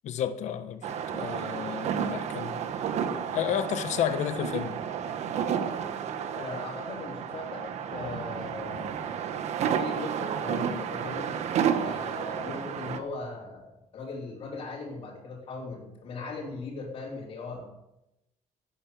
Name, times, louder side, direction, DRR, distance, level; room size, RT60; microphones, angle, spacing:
voice 1, 0.0-2.6 3.3-4.7, left 9 dB, 70° left, 1.3 m, -31 dB
sound 1, 0.8-13.0, right 8 dB, 65° right, 1.3 m, -31 dB
voice 2, 6.3-9.2 9.6-11.3 11.8-17.7, left 3 dB, 45° left, 3.9 m, -39 dB
17.5 x 9.9 x 6.9 m
cardioid pair, 180°, 13 cm